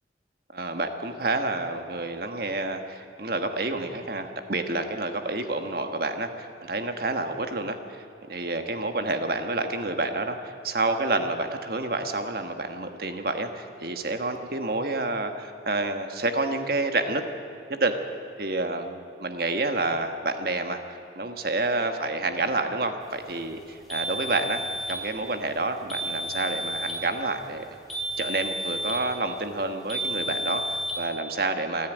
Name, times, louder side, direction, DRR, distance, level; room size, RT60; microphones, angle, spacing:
voice 1, 0.5-8.0 8.3-17.2 17.7-17.9 18.4-24.6 24.9-27.8 28.2-31.9, right 2 dB, 55° right, 6 dB, 1.4 m, -29 dB
sound 1, 23.9-25.0 25.9-27.0 27.9-29.0 29.9-31.0, equal, ahead, 3.6 m, -31 dB
28.0 x 10.0 x 9.1 m, 2.6 s
head